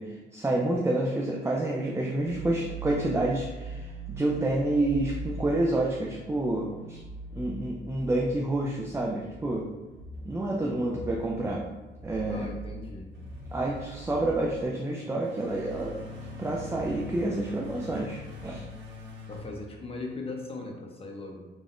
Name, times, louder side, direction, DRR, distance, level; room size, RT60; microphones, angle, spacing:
voice 1, 0.0-7.0 7.3-9.7 10.2-11.6 12.0-12.5 13.5-16.0 16.4-18.6, right 2 dB, 15° right, -2 dB, 0.5 m, -29 dB
sound 1, 2.2-20.3, right 1 dB, 60° right, 1.0 m, -42 dB
voice 2, 12.3-13.1 19.3-21.5, left 2 dB, 30° left, 1 dB, 0.8 m, -39 dB
3.5 x 2.5 x 3.6 m, 1.2 s
cardioid pair, 90°, 20 cm